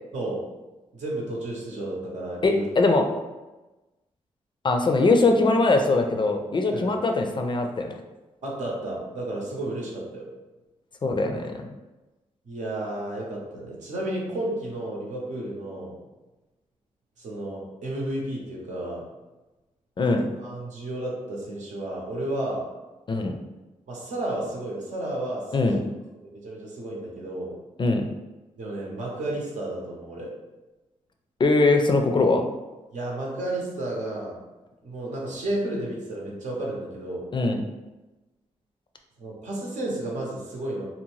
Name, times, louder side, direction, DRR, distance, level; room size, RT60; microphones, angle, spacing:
voice 1, 0.9-2.7 6.7-6.9 8.4-10.2 12.4-15.9 17.2-19.0 20.4-22.6 23.9-25.8 26.2-27.6 28.6-30.3 32.9-34.4 34.8-37.2 39.2-40.8, right 1 dB, 80° right, -3 dB, 0.7 m, -32 dB
voice 2, 2.4-3.1 4.6-7.9 11.0-11.7 20.0-20.2 23.1-23.4 25.5-25.8 27.8-28.0 31.4-32.5 37.3-37.6, left 3 dB, 40° left, 4 dB, 0.4 m, -21 dB
2.7 x 2.1 x 3.0 m, 1.1 s
cardioid pair, 60°, 12 cm